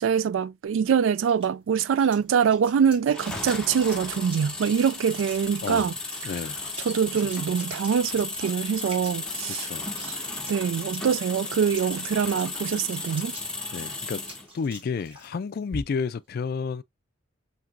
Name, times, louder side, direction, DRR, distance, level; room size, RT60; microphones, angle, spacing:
voice 1, 0.0-5.9 6.2-6.3 6.8-9.7 10.0-10.2 10.5-13.3, right 7 dB, 80° right, 0.3 m, -24 dB
sound 1, 0.7-16.2, equal, 30° right, 2.0 m, -47 dB
sound 2, 3.1-14.5, left 3 dB, 5° left, 1.0 m, -35 dB
voice 2, 5.6-5.9 6.2-6.6 9.5-9.9 13.7-14.2 14.5-16.8, left 5 dB, 50° left, 0.3 m, -31 dB
5.8 x 2.9 x 2.5 m
head